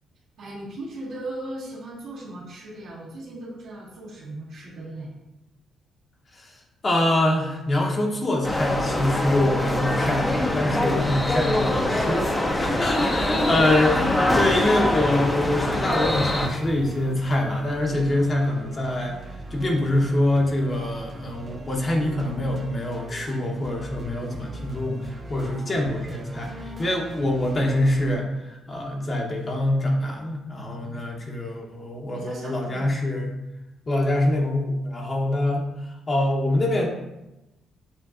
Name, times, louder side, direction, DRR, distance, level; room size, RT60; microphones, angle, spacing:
voice 1, 0.4-5.1 13.0-13.6 30.8-31.0 32.1-32.9, right 1 dB, 85° right, -10 dB, 1.4 m, -38 dB
voice 2, 6.8-12.3 12.6-19.2 19.5-33.4 33.9-36.9, left 1 dB, 35° left, 0 dB, 0.9 m, -25 dB
sound 1, 8.4-16.5, left 1 dB, 15° left, 0.6 m, -24 dB
sound 2, 10.2-28.2, equal, 35° right, 0.5 m, -39 dB
7.2 x 2.5 x 2.5 m, 0.94 s
cardioid pair, 90°, 0 cm